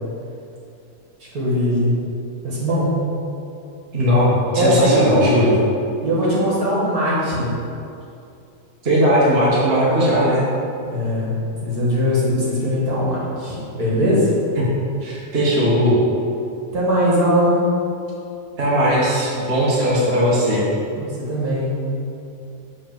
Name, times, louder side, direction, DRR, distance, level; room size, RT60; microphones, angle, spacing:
voice 1, 1.3-1.9 2.4-3.0 4.6-5.3 6.0-7.5 10.8-11.3 11.6-14.3 16.7-17.7 21.0-21.9, equal, 55° right, -6 dB, 2.1 m, -20 dB
voice 2, 3.9-5.5 8.8-10.4 14.6-14.7 15.0-16.0 18.6-20.6, equal, 35° right, -7 dB, 1.5 m, -18 dB
7.4 x 3.9 x 5.9 m, 2.6 s
omnidirectional pair, 2.0 m